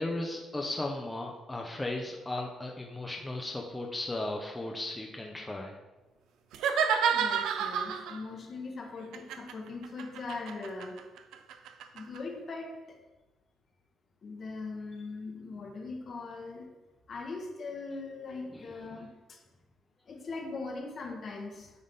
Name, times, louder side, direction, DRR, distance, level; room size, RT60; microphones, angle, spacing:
voice 1, 0.0-5.8 18.5-19.0, left 2 dB, 15° left, 0 dB, 0.8 m, -36 dB
sound 1, 6.5-8.2 9.1-12.2, right 7 dB, 85° right, 0.5 m, -30 dB
voice 2, 7.1-11.0 11.9-12.8 14.2-16.7 17.1-19.4 20.1-21.7, left 3 dB, 50° left, 2 dB, 1.3 m, -40 dB
9.6 x 3.7 x 3.7 m, 1.1 s
cardioid pair, 90°, 0 cm